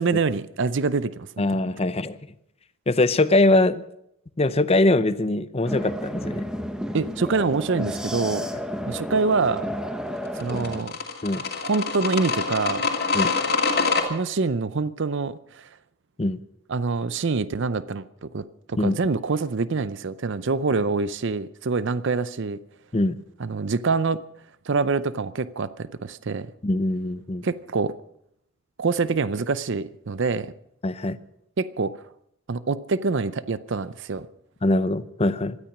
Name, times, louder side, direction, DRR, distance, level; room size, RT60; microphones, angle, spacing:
voice 1, 0.0-1.3 6.9-8.5 8.9-9.7 10.4-10.9 11.6-12.9 14.0-15.7 16.7-18.4 18.7-22.6 23.4-24.2 24.7-26.5 27.4-27.9 28.8-30.5 31.6-31.9 32.5-34.3, right 4 dB, 55° right, 0.6 m, -25 dB
voice 2, 1.4-2.2 2.9-3.8 4.4-6.5 11.2-11.4 13.1-13.3 16.2-16.4 18.8-19.0 22.9-23.2 26.6-27.4 30.8-31.2 34.6-35.6, left 2 dB, 30° left, 0.6 m, -22 dB
sound 1, 5.6-10.8, equal, 5° right, 0.9 m, -31 dB
sound 2, 10.4-14.0, left 4 dB, 45° left, 2.6 m, -25 dB
17.5 x 13.0 x 6.0 m
head